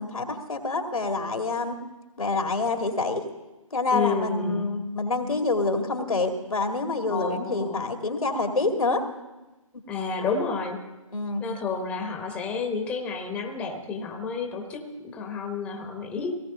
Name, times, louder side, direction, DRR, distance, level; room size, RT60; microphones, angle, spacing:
voice 1, 0.0-1.8 2.2-3.2 3.7-9.0 10.2-10.3 11.1-11.4, left 3 dB, 90° left, 4 dB, 2.4 m, -27 dB
voice 2, 3.9-4.7 7.1-7.8 9.9-10.8 11.4-16.3, left 5 dB, 5° left, 4 dB, 1.0 m, -30 dB
18.0 x 17.0 x 3.8 m, 1.1 s
hypercardioid pair, 155°, 18 cm